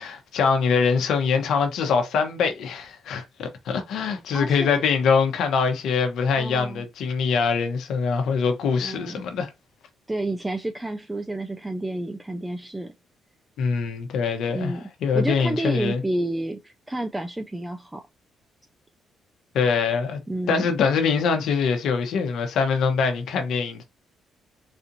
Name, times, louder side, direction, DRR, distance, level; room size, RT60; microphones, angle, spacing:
voice 1, 0.0-9.5 13.6-16.0 19.5-20.2 20.5-23.8, left 5 dB, 75° left, 1.0 m, -23 dB
voice 2, 4.3-4.7 6.4-6.8 8.8-9.2 10.1-12.9 14.5-14.9 15.1-18.0 20.3-20.7, right 1 dB, 10° right, 0.4 m, -30 dB
4.2 x 2.5 x 2.8 m
cardioid pair, 90°, 0 cm